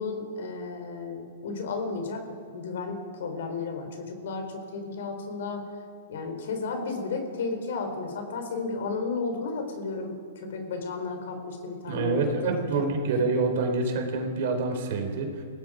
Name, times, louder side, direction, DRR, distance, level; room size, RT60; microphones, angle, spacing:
voice 1, 0.0-5.6 6.1-12.9, left 4 dB, 60° left, 5 dB, 4.4 m, -33 dB
voice 2, 11.8-15.4, right 3 dB, 50° right, 4 dB, 4.0 m, -27 dB
29.5 x 17.5 x 5.2 m, 2.2 s
hypercardioid pair, 165°, 0 cm